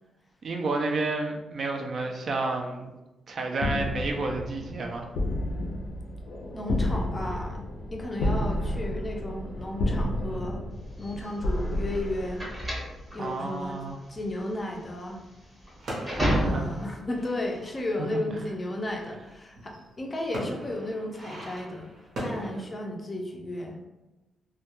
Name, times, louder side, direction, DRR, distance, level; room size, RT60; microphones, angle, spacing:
voice 1, 0.4-2.9 3.3-5.0 13.2-14.0 16.1-16.8 18.0-18.2, right 3 dB, 50° right, 2 dB, 0.3 m, -31 dB
sound 1, 3.6-13.1, left 1 dB, 90° left, 0.4 m, -31 dB
voice 2, 6.5-10.6 11.0-12.4 13.1-13.8 14.1-15.2 16.3-21.9 22.2-23.9, left 1 dB, 25° left, 1 dB, 0.4 m, -34 dB
sound 2, 11.0-17.0, equal, 10° right, 0.7 m, -31 dB
sound 3, 15.8-22.6, right 1 dB, 65° right, 0.8 m, -40 dB
2.1 x 2.1 x 2.9 m, 1.0 s
cardioid pair, 130°, 0 cm